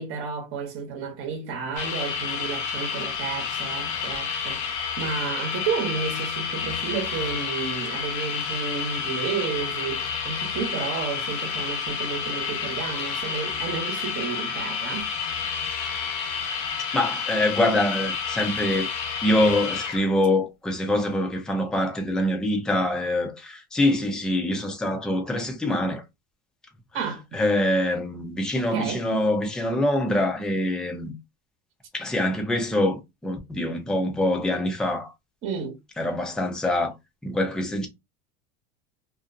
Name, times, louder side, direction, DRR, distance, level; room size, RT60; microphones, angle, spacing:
voice 1, 0.0-15.1 26.9-27.4 28.6-29.0 35.4-35.8, right 5 dB, 45° right, 1.0 m, -32 dB
sound 1, 1.8-20.0, left 6 dB, 60° left, 0.7 m, -30 dB
voice 2, 16.9-18.9 19.2-26.0 27.3-31.1 31.9-35.1 36.0-36.9 37.2-37.9, left 1 dB, ahead, 0.5 m, -24 dB
2.5 x 2.2 x 2.5 m
supercardioid pair, 125°, 29 cm